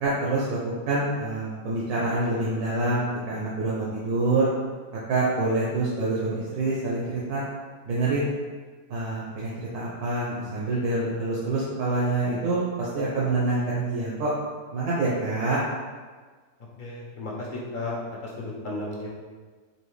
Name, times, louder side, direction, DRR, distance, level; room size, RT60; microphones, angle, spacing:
voice 1, 0.0-4.5 5.1-7.4 7.8-8.3 8.9-14.3 14.7-15.6, right 2 dB, 85° right, -7 dB, 1.3 m, -26 dB
voice 2, 16.8-19.1, left 2 dB, 45° left, -5 dB, 0.7 m, -34 dB
4.2 x 2.6 x 3.1 m, 1.4 s
omnidirectional pair, 1.6 m